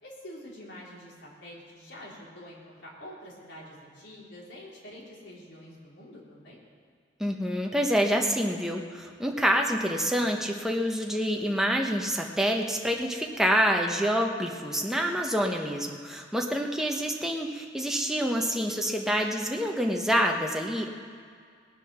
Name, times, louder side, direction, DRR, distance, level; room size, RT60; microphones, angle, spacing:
voice 1, 0.0-6.6, left 1 dB, 70° left, -4 dB, 3.4 m, -46 dB
voice 2, 7.2-20.9, equal, 5° right, 1 dB, 1.1 m, -27 dB
19.5 x 7.8 x 6.2 m, 2.1 s
head